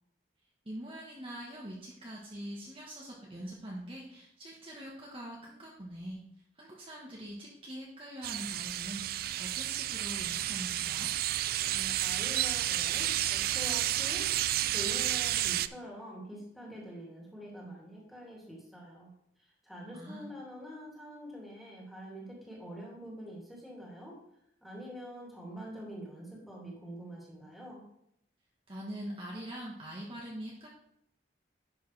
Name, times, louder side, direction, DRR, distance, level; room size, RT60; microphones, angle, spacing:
voice 1, 0.6-6.2 6.6-11.1 19.9-20.3 28.7-30.7, right 1 dB, 30° right, -3 dB, 1.4 m, -43 dB
sound 1, 8.2-15.7, right 13 dB, 55° right, 0.3 m, -31 dB
voice 2, 11.6-14.3 14.7-19.1 19.6-24.2 24.6-27.8, equal, ahead, -5 dB, 2.7 m, -45 dB
11.0 x 6.5 x 3.4 m, 0.75 s
head